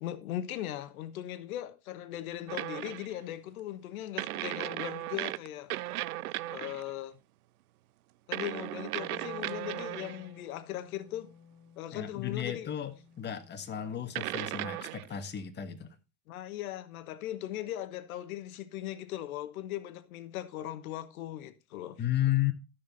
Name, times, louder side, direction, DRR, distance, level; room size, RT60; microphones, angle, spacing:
voice 1, 0.0-5.7 6.5-7.2 8.3-11.3 11.8-12.7 16.3-22.0, left 13 dB, 70° left, 1.3 m, -39 dB
sound 1, 2.5-3.1 4.2-6.9 8.3-10.3 12.4-12.5 14.1-15.2, right 16 dB, 80° right, 0.5 m, -36 dB
Wind instrument woodwind instrument, 8.8-15.0, left 7 dB, 50° left, 2.0 m, -56 dB
voice 2, 11.9-15.9 22.0-22.5, left 12 dB, 25° left, 1.3 m, -33 dB
12.0 x 6.8 x 4.1 m
hypercardioid pair, 95°, 44 cm